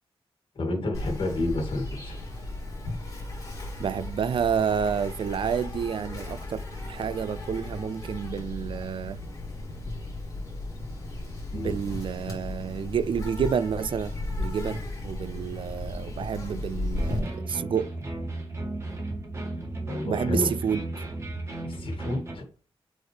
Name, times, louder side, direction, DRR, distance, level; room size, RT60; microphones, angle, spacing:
voice 1, 0.6-2.2 11.5-11.7 19.9-20.5 21.6-22.4, left 2 dB, 60° left, 2.0 m, -30 dB
Insect, 0.9-17.2, left 2 dB, 35° left, 3.2 m, -35 dB
voice 2, 3.8-9.2 11.5-14.1 14.4-17.9 20.0-20.8, right 7 dB, 60° right, 0.3 m, -29 dB
sound 1, 16.9-22.3, right 2 dB, 30° right, 2.1 m, -35 dB
7.8 x 4.1 x 3.3 m
wide cardioid pair, 170°, 10 cm